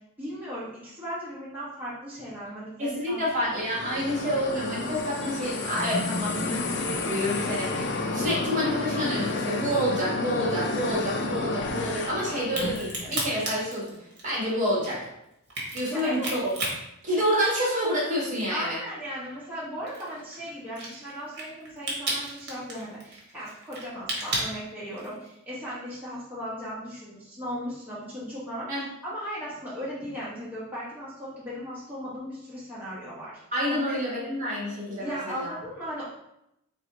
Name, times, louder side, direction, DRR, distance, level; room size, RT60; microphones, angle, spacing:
voice 1, 0.2-3.5 15.9-16.3 18.5-33.4 33.7-34.0 35.0-36.0, equal, 10° right, -10 dB, 1.2 m, -37 dB
voice 2, 2.8-13.9 14.2-15.1 15.7-16.6 17.0-18.8 28.7-28.8 33.5-35.5, equal, 35° right, -6 dB, 1.4 m, -28 dB
sound 1, 3.4-13.1, left 3 dB, 50° left, 0.5 m, -31 dB
Crack, 12.4-17.9 18.3-25.3, right 2 dB, 50° right, 1.2 m, -34 dB
4.0 x 3.7 x 3.0 m, 0.82 s
head